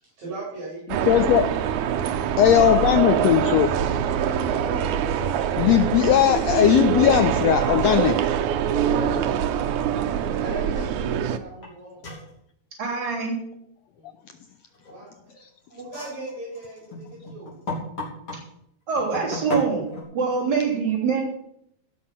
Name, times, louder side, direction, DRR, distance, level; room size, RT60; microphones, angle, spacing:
voice 1, 0.2-1.1 1.9-2.4 4.2-4.9 8.8-9.5 10.4-12.0 14.0-14.1 14.9-17.5 20.3-20.7, right 2 dB, 65° right, -5 dB, 6.1 m, -38 dB
sound 1, 0.9-11.4, right 9 dB, 80° right, 2.2 m, -24 dB
voice 2, 1.1-1.7 2.4-3.7 5.6-8.2, left 11 dB, 75° left, 9 dB, 1.6 m, -18 dB
sound 2, 11.6-11.7 12.0-12.3 14.7-15.2 15.8-18.4 19.0-20.0, left 2 dB, 50° left, 4.8 m, -34 dB
voice 3, 12.8-13.4 18.9-19.8 20.1-21.2, right 5 dB, 35° right, -4 dB, 4.0 m, -24 dB
17.0 x 6.1 x 5.8 m, 0.72 s
omnidirectional pair, 3.5 m